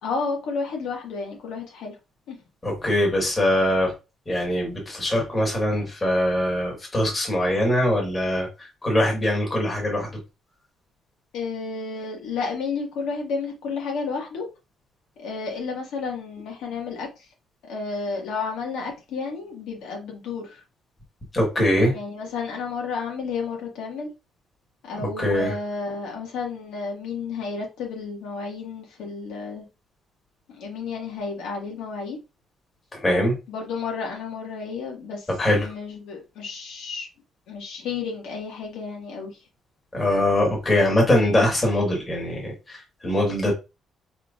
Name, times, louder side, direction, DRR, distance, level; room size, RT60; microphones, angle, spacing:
voice 1, 0.0-2.0 2.3-2.4 11.3-14.4 15.2-17.1 17.6-20.6 21.9-24.1 24.8-29.6 30.5-32.2 33.5-37.1 37.5-39.4, left 4 dB, 85° left, 1.9 m, -31 dB
voice 2, 2.6-3.9 4.3-8.5 8.8-10.1 21.3-21.9 25.2-25.5 33.0-33.3 35.4-35.7 39.9-42.8 43.0-43.5, left 1 dB, 15° left, 1.7 m, -22 dB
4.7 x 4.5 x 2.5 m
cardioid pair, 170°, 0 cm